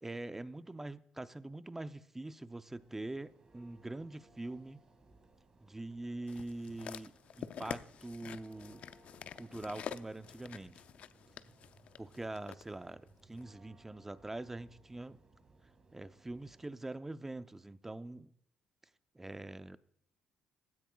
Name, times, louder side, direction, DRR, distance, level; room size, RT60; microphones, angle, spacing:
voice 1, 0.0-4.8 5.6-8.8 9.3-10.8 12.0-15.2 15.9-18.3 19.1-19.8, right 2 dB, 15° right, 0.6 m, -44 dB
Church bell, 2.6-16.8, right 2 dB, 35° right, 1.9 m, -64 dB
sound 1, 6.3-12.6 13.4-13.5, left 9 dB, 60° left, 0.5 m, -47 dB
16.0 x 10.0 x 2.3 m
cardioid pair, 90°, 2 cm